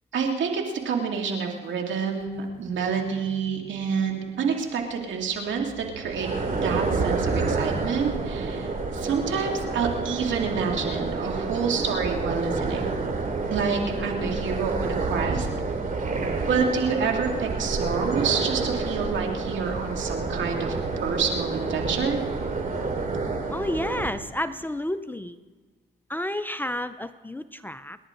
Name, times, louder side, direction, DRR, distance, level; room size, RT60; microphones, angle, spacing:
voice 1, 0.1-6.3 6.6-12.9 13.5-15.5 16.5-20.8 21.0-22.2, right 6 dB, 70° right, 2 dB, 2.5 m, -28 dB
sound 1, 1.2-1.3 1.8-9.4, right 5 dB, 90° right, 1.4 m, -47 dB
sound 2, 5.8-24.1, right 3 dB, 45° right, 2.7 m, -29 dB
voice 2, 23.5-25.4 26.1-28.0, left 1 dB, 10° left, 11 dB, 0.5 m, -30 dB
28.0 x 11.0 x 3.8 m, 1.3 s
cardioid pair, 90°, 20 cm